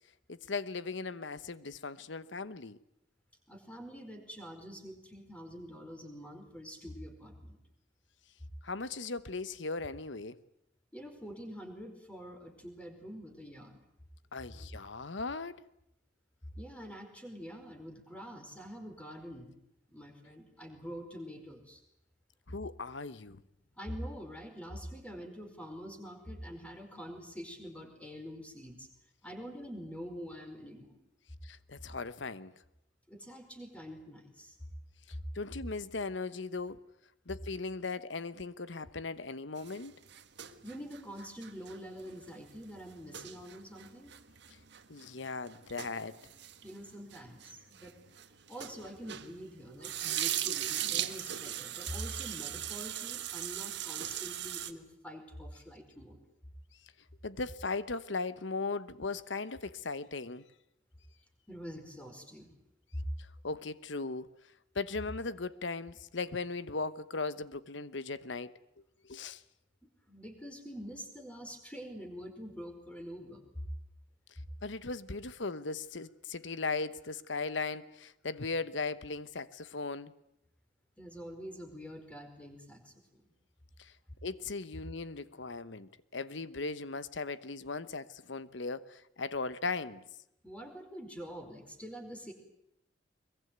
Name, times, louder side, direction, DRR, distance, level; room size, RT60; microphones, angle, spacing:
voice 1, 0.3-2.8 8.6-10.4 14.3-15.6 22.5-23.4 31.4-32.5 35.1-36.8 37.3-40.0 44.9-46.2 57.2-60.5 63.2-64.3 64.7-68.5 69.0-69.4 74.6-80.1 83.8-83.9 84.2-90.0, left 3 dB, 70° left, 1.1 m, -38 dB
voice 2, 3.5-7.6 10.9-13.8 16.6-19.6 19.9-21.8 23.8-28.9 29.2-31.0 33.1-34.6 40.6-44.1 46.6-47.9 48.5-56.2 61.5-62.5 62.9-63.0 69.8-73.4 74.4-74.5 81.0-83.3 90.4-92.3, equal, 5° left, 4.9 m, -45 dB
sound 1, 39.6-49.4 49.7-54.7, right 11 dB, 65° right, 1.6 m, -39 dB
22.5 x 22.5 x 9.4 m
head